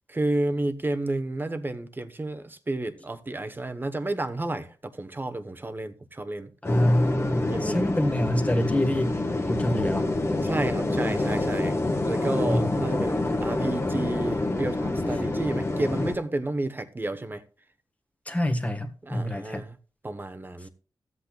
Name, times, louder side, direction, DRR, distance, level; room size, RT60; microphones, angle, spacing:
voice 1, 0.1-6.5 7.5-7.9 10.4-11.8 12.0-17.4 19.0-19.8 20.0-20.7, right 2 dB, 25° right, 1.0 m, -31 dB
sound 1, 6.6-16.1, left 2 dB, 30° left, 1.6 m, -27 dB
voice 2, 6.6-9.2 9.5-10.1 12.5-12.8 18.2-19.6, left 1 dB, 15° left, 1.5 m, -26 dB
15.0 x 8.1 x 2.3 m
wide cardioid pair, 85°, 8 cm